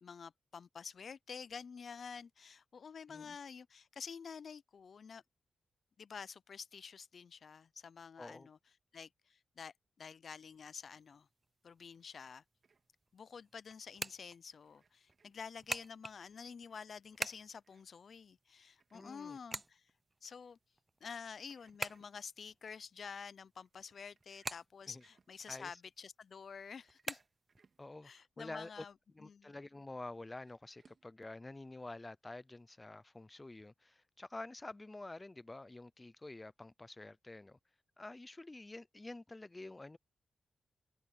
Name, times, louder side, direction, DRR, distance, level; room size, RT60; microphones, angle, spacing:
voice 1, 0.0-5.2 6.0-8.6 8.9-11.3 11.6-12.4 13.1-19.8 20.2-20.6 21.0-27.2 28.0-28.9 29.2-29.5, left 6 dB, 60° left, 0.5 m, -49 dB
voice 2, 8.2-8.5 18.9-19.4 24.9-25.0 25.5-25.8 27.8-28.8 29.1-37.6 38.0-40.0, left 2 dB, 20° left, 0.7 m, -49 dB
sound 1, 10.3-27.8, right 2 dB, 20° right, 0.6 m, -49 dB
sound 2, 11.6-31.1, right 5 dB, 50° right, 3.5 m, -76 dB
cardioid pair, 90°, 0 cm